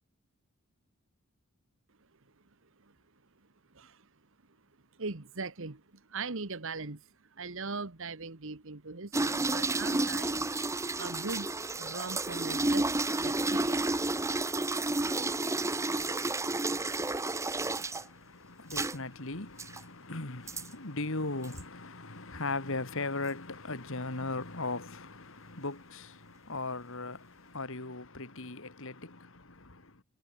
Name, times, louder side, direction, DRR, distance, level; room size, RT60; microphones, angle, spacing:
voice 1, 3.7-4.1 5.0-10.5 11.0-11.5 11.7-13.8, right 4 dB, 60° right, 1.4 m, -40 dB
sound 1, 9.1-18.0 18.7-19.0 19.6-19.8 20.5-20.7 21.4-21.6, right 2 dB, 15° right, 0.8 m, -31 dB
voice 2, 17.7-30.0, left 3 dB, 60° left, 2.5 m, -38 dB
head